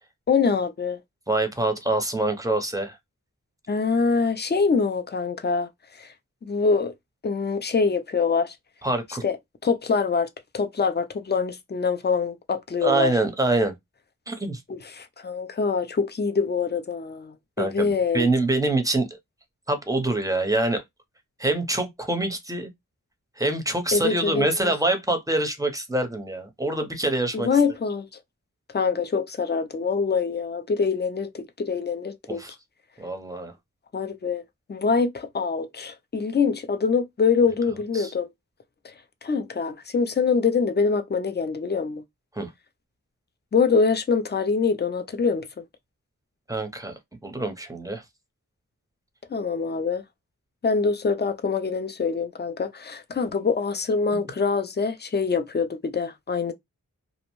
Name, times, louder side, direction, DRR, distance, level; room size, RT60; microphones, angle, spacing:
voice 1, 0.3-1.0 3.7-5.7 6.0-6.1 6.4-6.9 7.2-8.6 9.2-9.4 9.6-10.3 10.5-13.1 14.7-18.3 23.9-24.7 27.3-28.1 28.7-32.4 33.9-38.3 38.8-38.9 39.2-42.0 43.5-45.6 49.3-50.0 50.6-56.5, left 5 dB, 30° left, 0.4 m, -24 dB
voice 2, 1.3-3.0 8.8-9.3 12.8-13.7 14.3-14.6 17.6-19.2 19.7-20.8 21.4-22.7 23.4-27.5 32.3-32.5 33.0-33.5 37.9-38.1 42.4-42.5 46.5-46.9 47.2-48.0, right 2 dB, 10° right, 0.6 m, -25 dB
2.6 x 2.1 x 3.0 m
wide cardioid pair, 55°, 34 cm